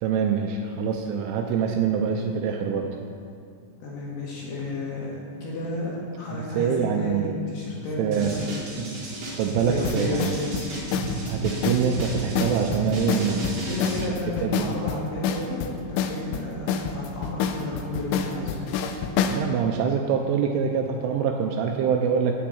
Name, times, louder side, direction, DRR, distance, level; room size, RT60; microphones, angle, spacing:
voice 1, 0.0-2.9 6.6-7.4 8.0-8.5 8.8-9.0 9.3-10.4 11.3-13.7 14.4-14.8 19.3-22.4, right 7 dB, 85° right, 3 dB, 2.9 m, -25 dB
voice 2, 3.8-8.6 9.6-10.6 13.7-18.7, left 1 dB, 65° left, -5 dB, 3.1 m, -32 dB
sound 1, 8.1-14.0, right 2 dB, 45° right, 2.8 m, -33 dB
sound 2, 9.8-19.4, left 7 dB, 85° left, 2.8 m, -28 dB
9.2 x 6.0 x 8.3 m, 2.4 s
omnidirectional pair, 6.0 m